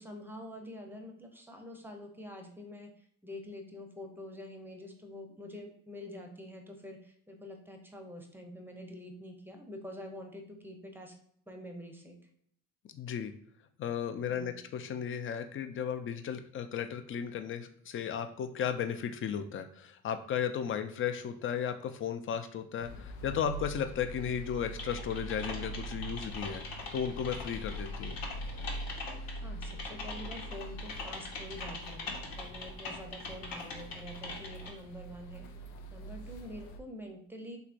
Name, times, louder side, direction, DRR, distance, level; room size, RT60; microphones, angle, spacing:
voice 1, 0.0-11.1 11.5-12.2 14.3-14.6 29.1-35.5 35.9-37.6, left 1 dB, 5° right, 3 dB, 0.6 m, -46 dB
voice 2, 12.9-13.3 13.8-28.2, left 8 dB, 35° left, 8 dB, 0.4 m, -35 dB
sound 1, 22.8-36.8, right 1 dB, 85° left, 0.6 m, -43 dB
Typing, 24.8-34.7, left 3 dB, 60° left, 1.0 m, -42 dB
3.2 x 3.0 x 2.5 m, 0.66 s
supercardioid pair, 80°, 39 cm